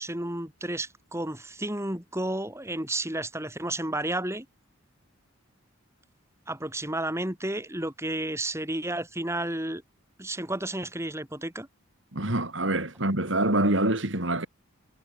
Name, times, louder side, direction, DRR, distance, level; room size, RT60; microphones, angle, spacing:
voice 1, 0.0-4.5 6.5-9.8 10.2-11.7, right 1 dB, 15° right, 5.4 m, -32 dB
voice 2, 12.1-14.5, right 1 dB, 65° right, 3.9 m, -25 dB
head